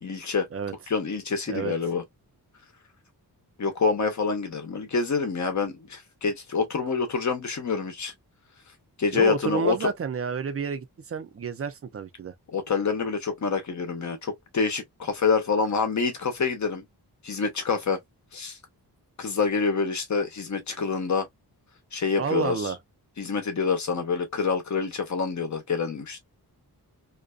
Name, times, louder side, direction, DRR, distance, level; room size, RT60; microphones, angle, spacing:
voice 1, 0.0-0.5 0.9-2.0 3.6-8.1 9.0-9.9 12.5-16.8 17.2-18.0 18.3-18.6 19.2-21.3 21.9-22.7 23.2-26.2, left 5 dB, 50° left, 0.8 m, -27 dB
voice 2, 9.1-12.3 22.2-22.8, right 6 dB, 40° right, 0.4 m, -30 dB
2.5 x 2.2 x 2.3 m
wide cardioid pair, 170°, 38 cm